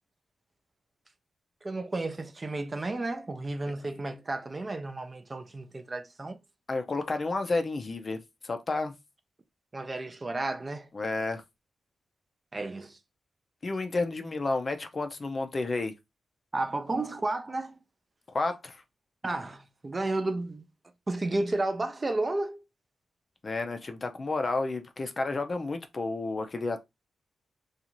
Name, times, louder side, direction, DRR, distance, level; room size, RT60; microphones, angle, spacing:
voice 1, 1.6-6.4 9.7-10.9 12.5-13.0 16.5-17.8 19.2-20.7 21.1-22.6, right 2 dB, 30° right, 0.4 m, -32 dB
voice 2, 6.7-8.9 10.9-11.4 13.6-15.9 18.3-18.8 23.4-26.8, left 3 dB, 35° left, 0.4 m, -31 dB
2.5 x 2.4 x 2.8 m
cardioid pair, 90°, 0 cm